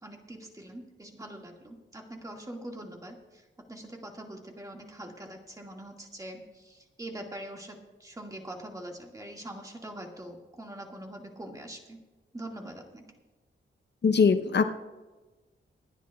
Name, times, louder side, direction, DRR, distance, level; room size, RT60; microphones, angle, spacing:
voice 1, 0.0-3.4 3.7-12.0 12.3-13.1, right 1 dB, 15° right, 1 dB, 1.9 m, -43 dB
voice 2, 14.0-14.7, left 5 dB, 55° left, 8 dB, 0.7 m, -22 dB
28.5 x 9.7 x 2.4 m, 1.2 s
wide cardioid pair, 125°, 21 cm